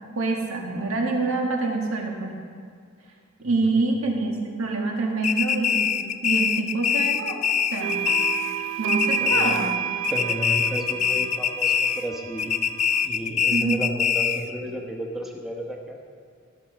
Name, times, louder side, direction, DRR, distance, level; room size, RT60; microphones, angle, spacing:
voice 1, 0.1-2.3 3.4-5.9 6.2-7.4 7.7-8.0 8.8-9.7 13.5-13.8, right 3 dB, 80° right, 0 dB, 1.8 m, -26 dB
sound 1, 5.2-8.6 8.9-9.8 10.0-12.1 12.4-14.5, left 8 dB, 35° left, 0.4 m, -24 dB
sound 2, 7.8-13.1, right 10 dB, 65° right, 0.4 m, -31 dB
voice 2, 9.2-9.5 10.1-12.6 13.0-16.0, equal, ahead, 0 dB, 1.1 m, -32 dB
13.5 x 6.2 x 6.2 m, 2.2 s
head